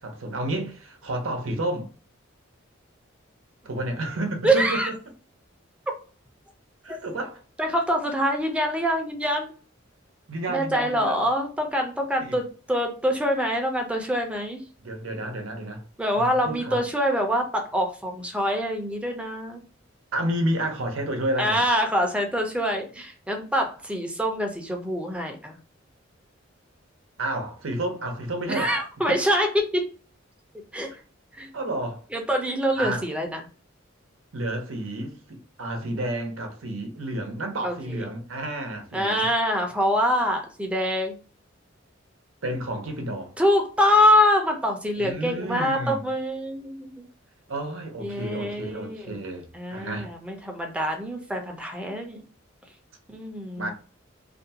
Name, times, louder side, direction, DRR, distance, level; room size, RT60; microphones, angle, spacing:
voice 1, 0.0-1.9 3.6-4.9 6.8-7.4 10.3-11.2 12.2-12.3 14.8-15.8 16.1-16.8 20.1-21.6 27.2-28.8 31.5-32.0 32.8-33.0 34.3-39.3 42.4-43.3 45.0-46.1 47.5-49.5 49.7-50.1 53.6-53.7, right 1 dB, 90° right, 0.7 m, -30 dB
voice 2, 4.4-4.9 6.9-7.0 7.6-9.5 10.5-14.6 16.0-19.6 21.4-25.6 28.5-29.9 30.7-30.9 31.3-31.5 32.1-33.4 37.6-38.0 38.9-41.1 43.4-47.1 48.0-49.2 49.5-52.2 53.1-53.7, equal, 5° right, 0.5 m, -25 dB
2.5 x 2.2 x 2.7 m
head